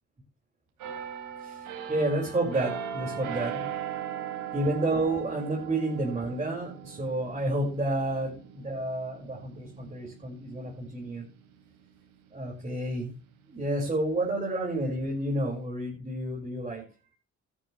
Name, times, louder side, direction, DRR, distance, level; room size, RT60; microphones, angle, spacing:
sound 1, 0.8-12.3 12.8-13.0, right 8 dB, 85° right, 4.0 m, -39 dB
voice 1, 1.4-3.6 4.5-11.2 12.3-13.1 13.5-16.8, right 1 dB, 25° right, -3 dB, 5.9 m, -30 dB
13.5 x 12.5 x 3.4 m, 0.36 s
cardioid pair, 90°, 30 cm